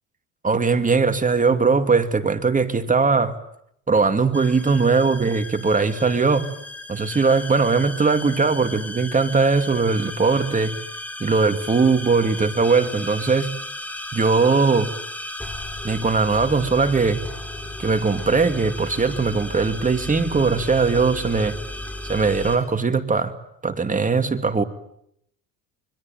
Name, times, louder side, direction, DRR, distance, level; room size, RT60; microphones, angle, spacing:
voice 1, 0.4-3.3 3.9-6.4 6.9-10.8 11.2-13.5 14.1-14.9 15.8-17.2 17.8-21.6 22.0-23.3 23.6-24.6, right 4 dB, 20° right, 9 dB, 2.3 m, -20 dB
sound 1, 4.3-22.6, left 1 dB, 5° left, 4.4 m, -35 dB
25.0 x 22.0 x 9.0 m, 0.75 s
supercardioid pair, 95°, 37 cm